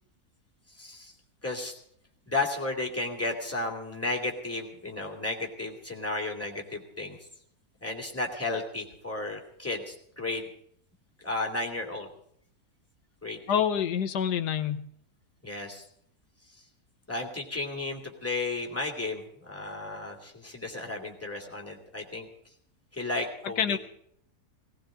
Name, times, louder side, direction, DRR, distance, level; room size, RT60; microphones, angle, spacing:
voice 1, 0.8-1.1 1.4-1.8 2.3-7.2 7.8-10.5 11.2-12.1 13.2-13.6 15.4-15.8 16.5-16.6 17.1-22.3 22.9-23.8, left 2 dB, 10° left, 0 dB, 2.6 m, -33 dB
voice 2, 13.5-14.9 23.6-23.8, left 8 dB, 90° left, 9 dB, 1.5 m, -27 dB
18.5 x 18.0 x 3.8 m, 0.67 s
omnidirectional pair, 1.7 m